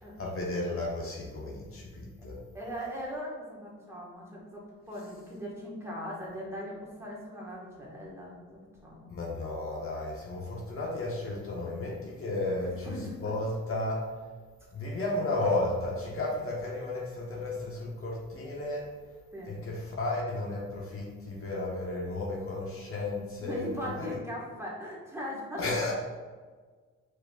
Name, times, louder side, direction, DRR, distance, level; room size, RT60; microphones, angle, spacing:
voice 1, 0.2-2.4 9.1-14.1 14.7-18.9 19.5-24.1 25.6-25.9, left 2 dB, 45° left, -3 dB, 1.1 m, -33 dB
voice 2, 2.5-9.1 12.6-13.3 19.3-19.5 23.4-25.6, equal, 10° right, -5 dB, 1.3 m, -40 dB
4.9 x 4.3 x 2.3 m, 1.5 s
cardioid pair, 90°, 30 cm